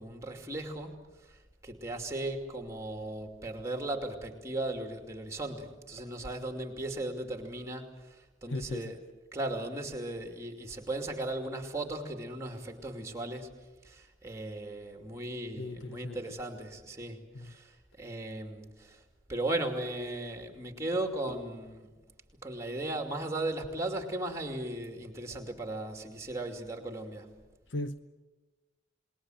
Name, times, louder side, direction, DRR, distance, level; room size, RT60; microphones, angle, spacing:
voice 1, 0.0-9.0 9.3-13.5 13.8-19.0 19.3-21.9 22.4-27.3, right 2 dB, 15° right, 5 dB, 2.6 m, -37 dB
voice 2, 8.5-8.9 15.6-16.2 17.3-17.5 27.7-28.0, left 1 dB, 70° left, 11 dB, 0.8 m, -37 dB
28.5 x 20.5 x 7.9 m, 1.2 s
head